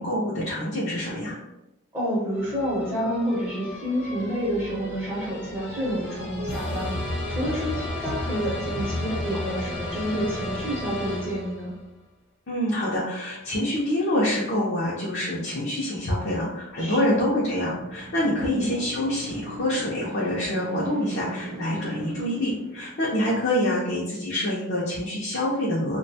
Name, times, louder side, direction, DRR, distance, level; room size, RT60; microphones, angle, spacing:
voice 1, 0.0-1.3 12.5-26.0, left 1 dB, 55° left, -6 dB, 0.6 m, -26 dB
voice 2, 1.9-6.9 7.3-11.7 16.8-17.2 18.4-18.7, equal, 10° right, -7 dB, 0.7 m, -29 dB
sound 1, 2.3-11.8, left 1 dB, 75° left, 1.0 m, -33 dB
sound 2, 16.6-23.3, right 1 dB, 50° right, 0.3 m, -39 dB
2.5 x 2.2 x 2.7 m, 0.92 s
head